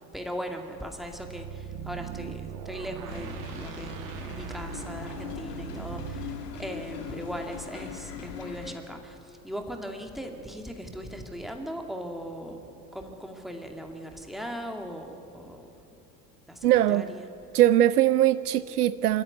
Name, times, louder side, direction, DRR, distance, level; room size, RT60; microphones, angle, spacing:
voice 1, 0.0-12.6 12.9-15.7 16.5-17.3, equal, ahead, 3 dB, 2.4 m, -39 dB
sound 1, 1.1-6.4, right 9 dB, 45° right, 1.5 m, -39 dB
sound 2, 3.1-8.7, left 7 dB, 65° left, 2.4 m, -40 dB
voice 2, 16.6-17.1 17.5-19.2, right 13 dB, 65° right, 16 dB, 0.6 m, -21 dB
26.0 x 13.5 x 9.7 m, 2.8 s
figure-of-eight pair, 75°, 50 cm